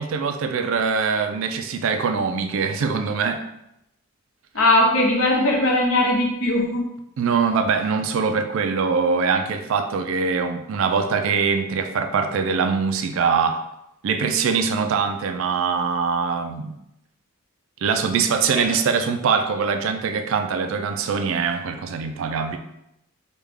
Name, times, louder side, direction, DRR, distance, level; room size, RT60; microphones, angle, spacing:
voice 1, 0.0-3.4 7.2-13.6 14.0-16.7 17.8-22.6, right 5 dB, 60° right, 7 dB, 0.3 m, -23 dB
voice 2, 4.5-6.8 18.6-18.7, left 1 dB, 70° left, -2 dB, 0.9 m, -19 dB
3.3 x 2.3 x 3.5 m, 0.83 s
head